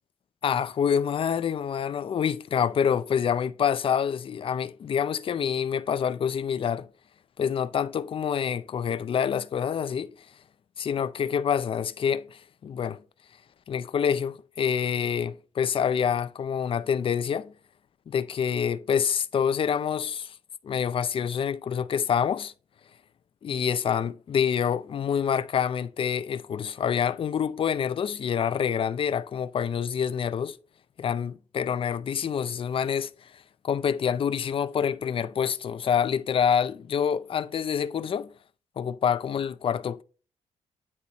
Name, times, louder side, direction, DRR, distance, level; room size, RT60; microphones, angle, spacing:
voice 1, 0.4-6.9 7.4-10.1 10.8-13.0 13.7-17.5 18.1-20.3 20.6-22.5 23.4-30.6 31.0-38.3 38.8-40.0, left 7 dB, 45° left, 0.5 m, -27 dB
9.7 x 4.2 x 3.0 m
cardioid pair, 135°, 13 cm